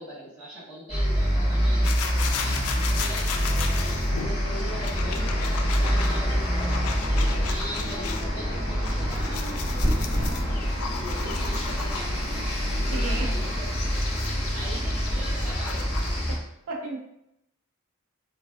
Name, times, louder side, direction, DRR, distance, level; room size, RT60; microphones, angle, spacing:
voice 1, 0.0-6.4 6.8-13.7 14.2-16.1, right 1 dB, ahead, -18 dB, 1.3 m, -41 dB
sound 1, 0.9-16.4, equal, 30° left, 1.3 m, -26 dB
sound 2, 1.8-8.2 8.6-12.3 12.8-16.2, left 6 dB, 75° left, 0.3 m, -36 dB
voice 2, 12.9-13.3 16.3-16.4 16.7-17.0, right 3 dB, 80° right, 0 dB, 0.5 m, -33 dB
3.2 x 2.2 x 2.3 m, 0.81 s
head